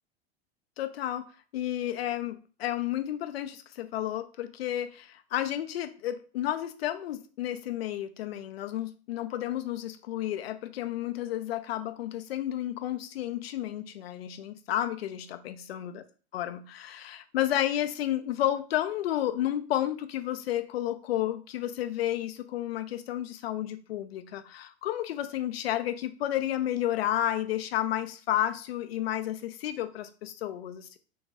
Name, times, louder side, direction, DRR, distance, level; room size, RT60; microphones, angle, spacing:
voice 1, 0.8-1.3 1.5-16.0 16.3-31.0, left 12 dB, 70° left, 11 dB, 0.6 m, -31 dB
4.1 x 3.3 x 3.6 m, 0.39 s
figure-of-eight pair, 80°, 32 cm